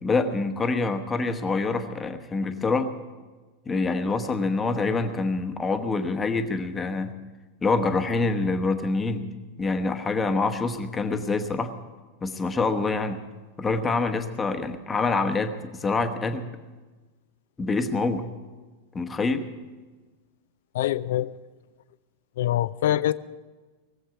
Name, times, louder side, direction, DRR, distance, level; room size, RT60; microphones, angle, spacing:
voice 1, 0.0-2.9 3.7-7.1 7.6-9.3 9.6-11.7 12.2-13.2 13.6-16.5 17.6-18.3 18.9-19.4, left 3 dB, 15° left, 7 dB, 1.0 m, -26 dB
voice 2, 20.7-21.4 22.4-23.1, left 13 dB, 55° left, 17 dB, 0.4 m, -24 dB
19.5 x 7.9 x 8.2 m, 1.3 s
figure-of-eight pair, 90°, 0 cm